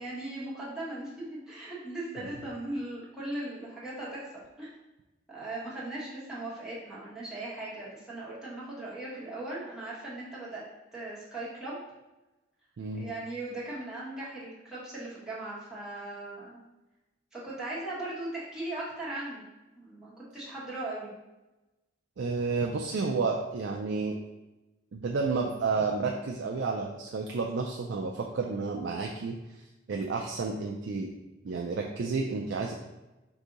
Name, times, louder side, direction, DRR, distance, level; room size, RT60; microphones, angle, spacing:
voice 1, 0.0-4.3 4.6-4.7 5.3-11.8 12.9-16.6 17.3-19.4 19.8-21.1, right 2 dB, 5° right, -9 dB, 1.2 m, -38 dB
voice 2, 22.2-24.1 24.9-29.3 29.9-31.1 31.4-32.7, right 4 dB, 65° right, 1 dB, 0.4 m, -31 dB
4.8 x 2.7 x 3.9 m, 1.0 s
head